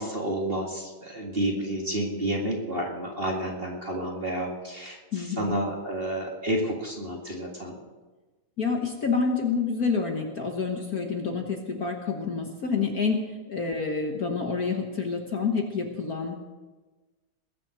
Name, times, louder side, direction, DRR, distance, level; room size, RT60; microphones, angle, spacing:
voice 1, 0.0-7.8, right 1 dB, 25° right, 0 dB, 1.9 m, -30 dB
voice 2, 5.1-5.5 8.6-13.2 13.5-16.3, left 5 dB, 45° left, 2 dB, 1.5 m, -28 dB
21.0 x 7.6 x 6.3 m, 1.2 s
omnidirectional pair, 2.4 m